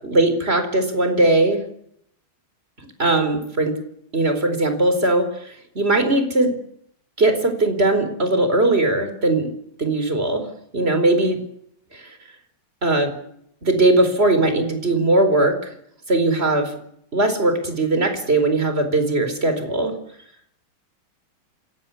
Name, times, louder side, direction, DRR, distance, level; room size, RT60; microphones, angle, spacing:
voice 1, 0.0-1.6 3.0-3.7 4.1-6.6 7.2-9.5 9.8-10.5 10.7-11.4 11.9-12.2 12.8-13.1 13.6-15.7 16.1-16.7 17.1-20.0, right 2 dB, 30° right, 8 dB, 4.7 m, -19 dB
27.0 x 18.0 x 8.6 m, 0.70 s
omnidirectional pair, 2.3 m